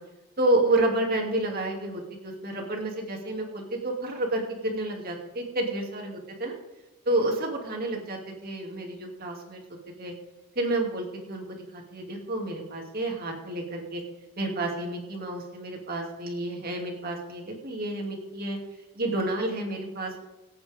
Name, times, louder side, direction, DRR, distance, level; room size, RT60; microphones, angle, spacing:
voice 1, 0.4-6.5 7.1-9.6 10.0-10.1 10.6-14.0 14.4-18.6 19.0-20.2, right 2 dB, 40° right, 1 dB, 2.7 m, -30 dB
23.0 x 8.7 x 3.7 m, 1.0 s
head